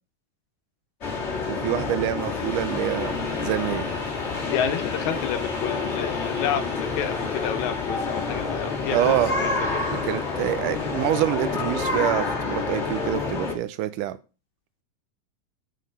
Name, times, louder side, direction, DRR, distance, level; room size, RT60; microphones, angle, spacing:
sound 1, 1.0-13.5, left 4 dB, 30° left, 1.5 m, -28 dB
voice 1, 1.5-3.9 8.9-9.4 10.0-14.2, right 13 dB, 90° right, 13 dB, 2.2 m, -26 dB
voice 2, 4.5-9.7, left 9 dB, 75° left, 8 dB, 2.0 m, -30 dB
6.7 x 6.5 x 4.1 m, 0.32 s
omnidirectional pair, 3.6 m